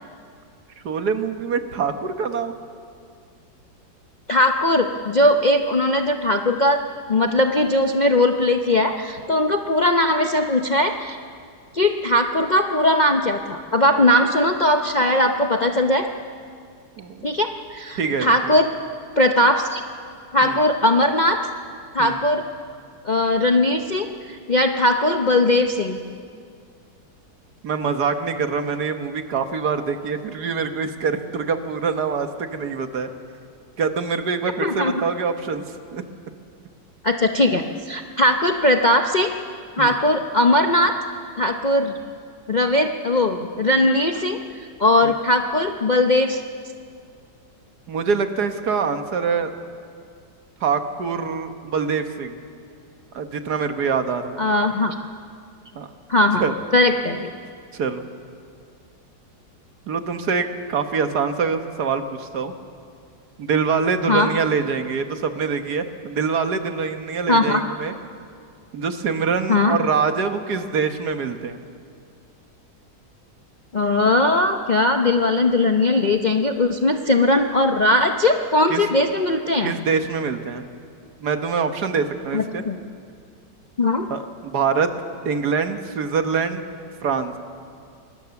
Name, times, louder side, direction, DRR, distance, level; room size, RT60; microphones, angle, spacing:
voice 1, 0.8-2.5 14.0-14.1 17.0-17.2 18.0-18.4 20.4-20.6 22.0-22.2 27.6-33.1 33.8-36.0 39.8-40.0 45.0-45.1 47.9-49.5 50.6-52.4 53.1-54.4 55.8-55.9 56.4-56.5 57.7-58.1 59.9-62.5 63.4-67.9 68.7-71.6 78.7-78.8 79.6-80.6 81.2-82.6 84.1-84.9 85.3-86.6 87.0-87.3, right 5 dB, 65° right, 7 dB, 1.8 m, -24 dB
voice 2, 4.3-6.8 7.1-11.2 11.7-16.1 17.2-18.7 19.2-19.8 20.3-21.4 21.9-22.4 23.0-26.0 34.6-34.9 37.0-39.3 39.8-40.9 41.4-41.9 42.5-44.4 44.8-46.4 54.4-54.9 56.1-56.4 56.7-57.3 64.1-64.3 67.3-67.6 69.5-69.8 73.7-79.7 82.3-82.8 83.8-84.1, left 1 dB, 40° left, 4 dB, 0.6 m, -19 dB
25.5 x 20.0 x 7.1 m, 2.3 s
omnidirectional pair, 1.9 m